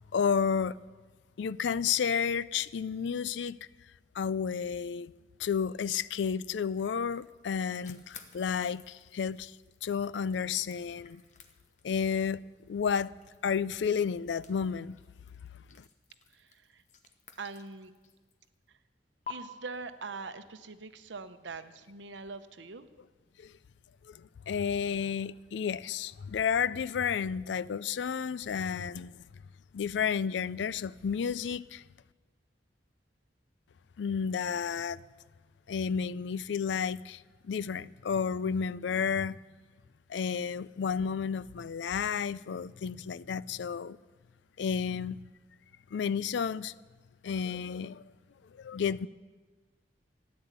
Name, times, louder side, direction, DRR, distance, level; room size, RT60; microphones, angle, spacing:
voice 1, 0.1-0.8 1.4-3.6 4.1-5.1 5.4-9.6 9.8-11.2 11.8-12.4 12.7-13.1 13.4-15.0 15.8-15.9 23.4-23.5 24.1-29.2 29.7-31.8 34.0-35.0 35.7-39.4 40.1-44.0 44.6-45.2 45.9-46.7 47.2-48.0 48.6-49.1, left 6 dB, 80° left, 0.4 m, -31 dB
sound 1, 6.7-18.6 19.2-19.3, left 7 dB, 40° left, 1.0 m, -54 dB
voice 2, 16.3-16.8 17.4-17.9 19.3-22.9, right 4 dB, 90° right, 0.9 m, -43 dB
14.0 x 9.6 x 8.2 m
head